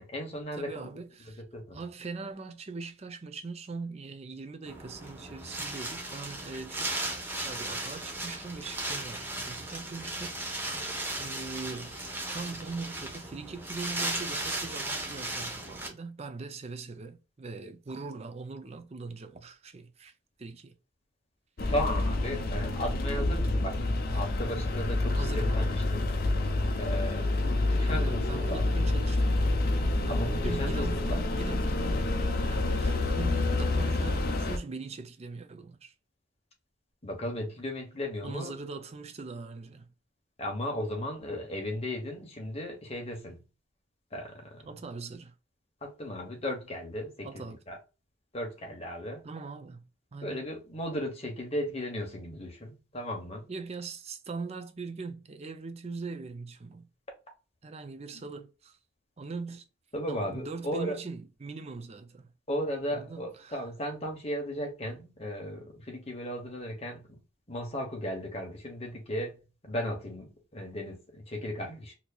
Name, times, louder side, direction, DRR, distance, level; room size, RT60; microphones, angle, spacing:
voice 1, 0.0-0.9 1.5-1.8 21.7-26.0 26.8-28.2 28.5-28.6 30.1-31.2 37.0-38.5 40.4-43.4 44.1-44.7 45.8-47.8 48.3-49.2 50.2-53.5 58.1-58.3 59.9-61.0 62.5-67.0 67.5-69.3 69.6-71.9, equal, 30° left, 1.1 m, -36 dB
voice 2, 0.5-1.4 1.7-6.9 7.2-10.6 11.2-11.9 12.3-20.1 20.4-20.7 24.1-24.2 25.1-25.8 27.9-29.4 30.0-32.1 32.4-35.9 38.2-39.9 44.7-45.3 47.2-47.6 49.2-49.8 50.1-50.4 53.5-56.9 57.6-58.8 59.2-59.6 60.1-62.3 62.9-63.7, right 4 dB, 30° right, 0.5 m, -41 dB
Wind, 4.7-15.9, right 2 dB, 10° right, 0.8 m, -36 dB
sound 1, 21.6-34.6, left 2 dB, 45° left, 0.6 m, -28 dB
4.4 x 2.8 x 2.3 m
head